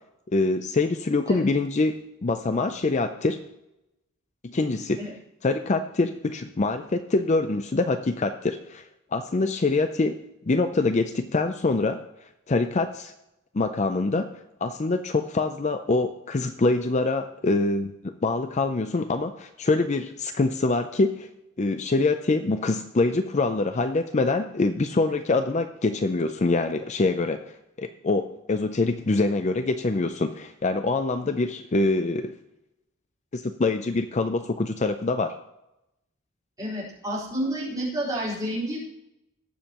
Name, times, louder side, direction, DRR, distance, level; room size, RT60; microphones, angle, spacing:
voice 1, 0.3-3.4 4.4-5.0 5.4-8.8 9.1-10.2 10.5-12.0 12.5-13.1 13.5-14.3 14.6-21.3 21.6-27.5 27.8-32.4 33.3-35.4, left 3 dB, 35° left, 9 dB, 0.5 m, -25 dB
voice 2, 36.6-38.8, right 1 dB, 15° right, -7 dB, 4.2 m, -29 dB
19.0 x 7.5 x 3.0 m, 0.89 s
head